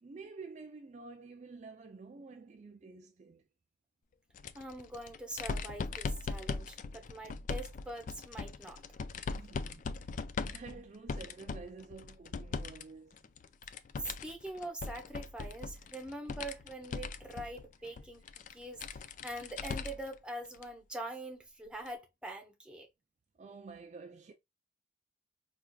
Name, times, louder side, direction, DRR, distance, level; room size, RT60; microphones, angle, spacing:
voice 1, 0.0-3.5 9.3-13.3 18.4-18.5 23.4-24.3, right 4 dB, 40° right, 0.4 m, -50 dB
sound 1, 4.3-12.8 13.1-20.1 20.5-20.6 21.9-22.0, left 4 dB, 45° left, 0.3 m, -40 dB
voice 2, 4.5-8.8 14.0-18.2 18.5-22.9, right 1 dB, 5° right, 0.8 m, -44 dB
4.4 x 2.4 x 2.2 m
head